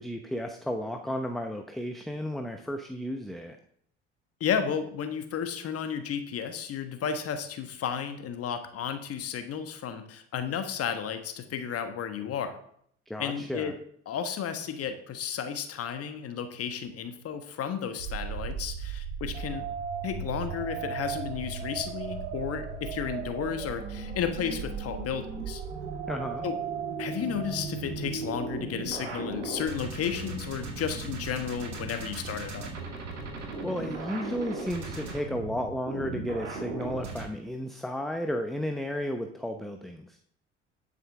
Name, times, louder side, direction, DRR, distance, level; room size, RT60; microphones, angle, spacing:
voice 1, 0.0-3.6 13.1-13.7 26.1-26.4 33.6-40.2, equal, ahead, 5 dB, 0.8 m, -33 dB
voice 2, 4.4-12.6 13.2-13.7 14.1-19.7 20.0-25.6 26.4-26.6 27.0-32.7, left 8 dB, 40° left, 8 dB, 1.4 m, -33 dB
sound 1, 18.0-37.3, right 5 dB, 80° right, 2.2 m, -36 dB
10.5 x 9.0 x 3.6 m, 0.66 s
figure-of-eight pair, 60°, 35 cm